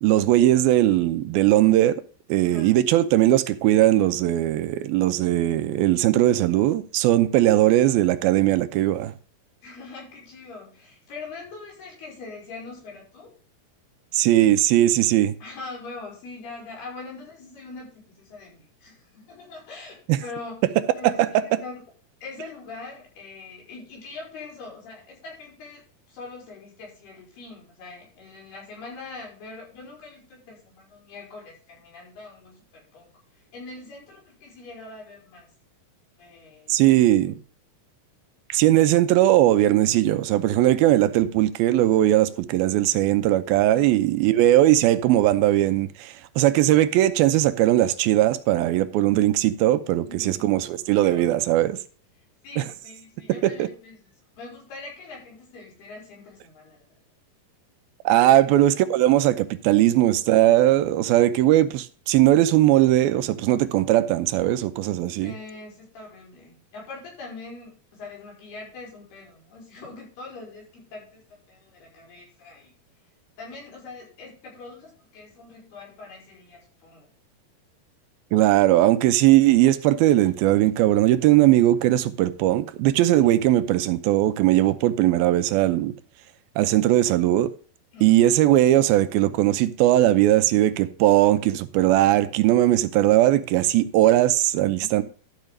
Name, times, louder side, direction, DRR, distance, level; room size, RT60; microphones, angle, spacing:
voice 1, 0.0-2.0 2.3-9.1 14.1-15.4 20.1-20.2 21.0-21.3 36.7-37.4 38.5-51.8 52.6-52.7 53.4-53.7 58.1-65.3 78.3-85.9 86.6-87.5 88.0-95.0, right 14 dB, 85° right, 2.5 m, -19 dB
voice 2, 9.6-13.3 15.4-20.6 21.0-21.8 22.2-25.8 26.1-33.1 33.5-35.5 36.2-36.9 43.7-43.9 50.0-50.6 50.9-51.4 52.4-54.0 54.4-56.9 58.1-58.3 65.2-71.2 71.5-72.7 73.4-77.1 83.2-83.4 87.9-88.2 94.7-95.0, left 3 dB, 85° left, 6.8 m, -42 dB
12.5 x 5.6 x 5.0 m
omnidirectional pair, 4.4 m